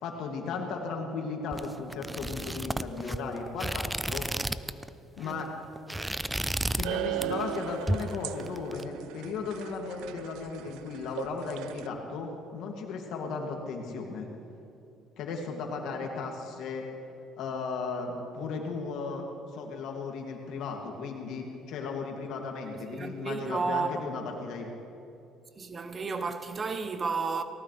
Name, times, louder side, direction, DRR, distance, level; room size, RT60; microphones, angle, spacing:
voice 1, 0.0-4.3 5.2-5.5 6.8-14.3 15.2-16.8 17.4-19.2 19.5-24.7, left 4 dB, 70° left, 2.4 m, -36 dB
sound 1, 1.5-4.9 5.2-5.4 5.7-6.9 7.2-7.6 7.9-8.8, right 1 dB, 10° right, 0.4 m, -32 dB
sound 2, 6.8-11.9, right 12 dB, 85° right, 0.4 m, -37 dB
voice 2, 22.9-24.0 25.5-27.4, right 4 dB, 30° right, 0.9 m, -32 dB
19.0 x 18.5 x 3.4 m
cardioid pair, 105°, 0 cm